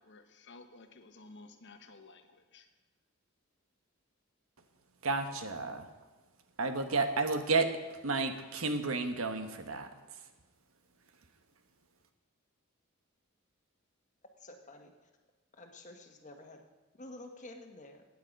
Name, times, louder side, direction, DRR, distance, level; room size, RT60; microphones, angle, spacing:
voice 1, 0.0-2.7, left 3 dB, 55° left, 7 dB, 1.1 m, -54 dB
voice 2, 5.0-5.9 6.6-7.7 8.0-9.9, right 3 dB, 85° right, 7 dB, 1.2 m, -31 dB
voice 3, 14.4-14.9 15.5-16.6 16.9-18.0, left 2 dB, 35° left, 4 dB, 1.4 m, -50 dB
15.5 x 9.4 x 5.3 m, 1.2 s
head